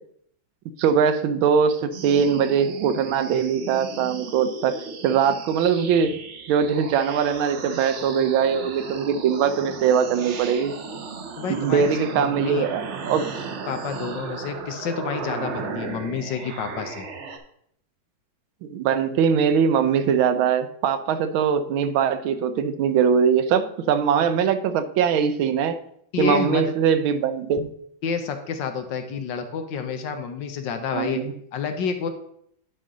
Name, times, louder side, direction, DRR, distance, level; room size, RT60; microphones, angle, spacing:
voice 1, 0.8-4.8 5.0-6.2 6.5-10.7 11.5-13.3 18.6-25.8 26.2-27.7 30.9-31.3, right 7 dB, 80° right, 11 dB, 1.4 m, -21 dB
sound 1, 1.9-17.4, right 5 dB, 65° right, 0.7 m, -35 dB
voice 2, 11.4-12.7 13.7-17.1 26.1-26.7 28.0-31.2 31.5-32.1, left 6 dB, 70° left, 7 dB, 1.4 m, -29 dB
10.5 x 5.3 x 3.7 m, 0.69 s
omnidirectional pair, 2.2 m